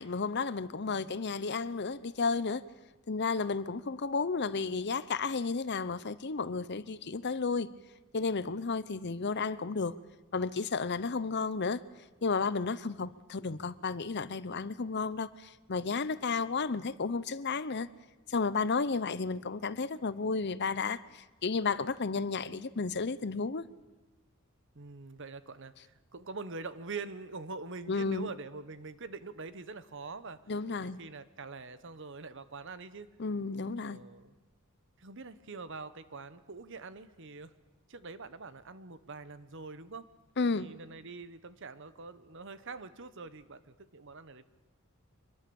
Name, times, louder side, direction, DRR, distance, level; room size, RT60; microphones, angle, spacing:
voice 1, 0.0-2.6 3.1-7.7 8.1-10.0 10.3-11.8 12.2-17.9 18.3-23.6 27.9-28.3 30.5-31.0 33.2-34.0 40.4-40.7, left 4 dB, 55° left, 0.8 m, -32 dB
voice 2, 24.7-30.4 30.8-33.1 33.9-34.3 35.0-37.5 37.9-40.1 40.5-44.4, right 4 dB, 60° right, 1.1 m, -44 dB
25.5 x 21.5 x 7.1 m
head